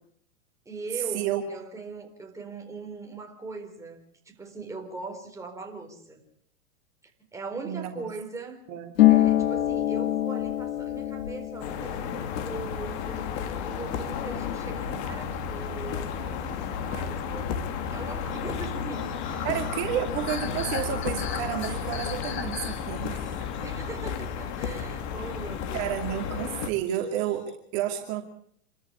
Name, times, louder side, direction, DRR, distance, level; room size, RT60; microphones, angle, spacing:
voice 1, 0.7-6.2 7.0-8.6 9.1-17.6 17.9-19.5 23.6-26.1, right 3 dB, 10° right, 2 dB, 4.2 m, -40 dB
voice 2, 7.6-8.0 8.7-8.9 19.4-23.5 25.7-28.2, right 11 dB, 40° right, 3 dB, 2.6 m, -31 dB
Harp, 9.0-16.4 16.7-17.8 18.1-18.7, left 14 dB, 80° left, 2.0 m, -27 dB
sound 1, 11.6-26.7, left 7 dB, 45° left, 2.8 m, -33 dB
sound 2, 18.3-24.8 25.2-26.6 26.9-27.5, left 7 dB, 30° left, 2.6 m, -41 dB
27.0 x 13.5 x 8.4 m, 0.63 s
hypercardioid pair, 135°, 39 cm